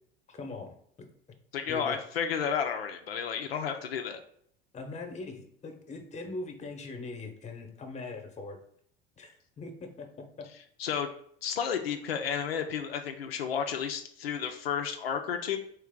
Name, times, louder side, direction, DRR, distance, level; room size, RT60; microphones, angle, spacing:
voice 1, 0.3-0.7 1.7-2.0 4.7-8.6 9.2-10.5, left 3 dB, 25° left, 5 dB, 0.8 m, -41 dB
voice 2, 1.5-4.2 10.8-11.1 11.4-15.6, left 7 dB, 90° left, 5 dB, 0.5 m, -32 dB
3.3 x 3.1 x 3.6 m, 0.65 s
hypercardioid pair, 80°, 29 cm